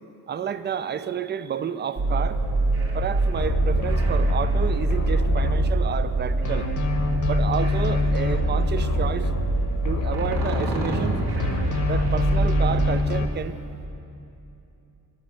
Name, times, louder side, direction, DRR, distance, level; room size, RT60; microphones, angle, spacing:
voice 1, 0.3-2.4 2.9-6.7 7.2-9.3 9.8-11.2 11.9-13.6, right 7 dB, 30° right, 13 dB, 0.4 m, -30 dB
sound 1, 2.0-13.0, right 2 dB, 85° right, 1.6 m, -24 dB
sound 2, 3.4-6.1 6.4-11.1 11.4-13.2, left 4 dB, 50° left, 1.0 m, -27 dB
11.5 x 5.3 x 7.3 m, 2.8 s
cardioid pair, 90°, 38 cm